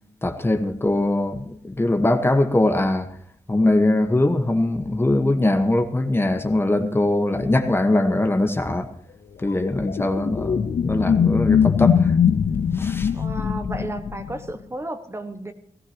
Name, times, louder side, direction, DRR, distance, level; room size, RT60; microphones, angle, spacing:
voice 1, 0.2-3.1 3.5-8.9 9.4-12.1 12.8-13.1, left 1 dB, 20° left, 7 dB, 1.1 m, -21 dB
sound 1, 9.5-14.5, left 7 dB, 65° left, 0.6 m, -21 dB
voice 2, 13.1-15.5, right 2 dB, 20° right, 8 dB, 1.3 m, -33 dB
18.0 x 16.0 x 2.9 m, 0.65 s
wide cardioid pair, 145°, 12 cm